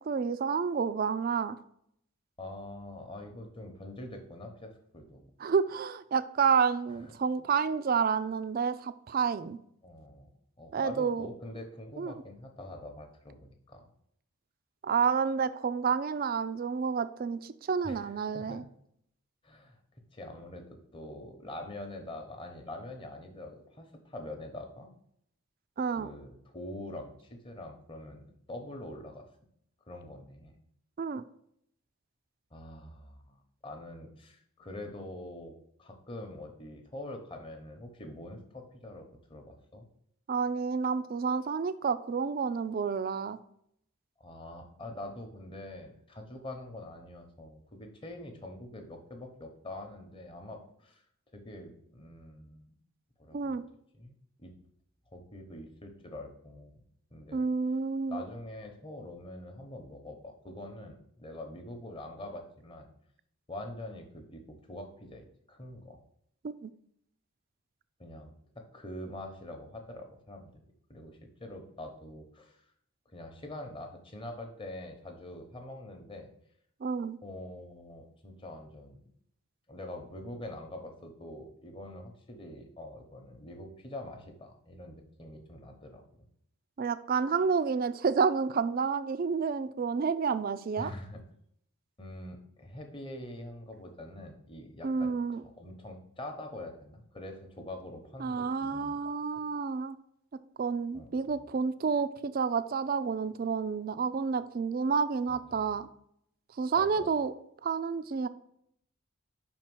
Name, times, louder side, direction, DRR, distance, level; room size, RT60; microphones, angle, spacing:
voice 1, 0.1-1.6 5.4-9.6 10.7-11.3 12.0-12.1 14.8-18.6 25.8-26.1 31.0-31.2 40.3-43.4 53.3-53.6 57.3-58.2 66.4-66.7 76.8-77.2 86.8-90.9 94.8-95.4 98.2-100.0 100.6-105.9 106.6-107.3 107.6-108.3, right 5 dB, 40° right, 13 dB, 0.3 m, -29 dB
voice 2, 2.4-5.3 6.9-7.1 9.8-10.3 10.6-13.9 17.8-18.6 19.4-19.8 20.1-20.7 20.9-24.9 26.0-29.3 29.9-30.6 32.5-35.5 35.8-39.9 44.2-51.0 51.3-52.8 53.2-53.6 53.9-54.5 55.1-56.8 57.1-57.5 58.1-62.9 63.5-66.0 68.0-70.6 70.9-72.6 73.1-76.3 77.2-79.1 79.7-86.0 90.8-91.2 92.0-99.0 100.9-101.4 105.3-105.8 106.7-107.1, left 1 dB, 25° left, 4 dB, 0.9 m, -45 dB
5.6 x 4.4 x 6.1 m, 0.71 s
head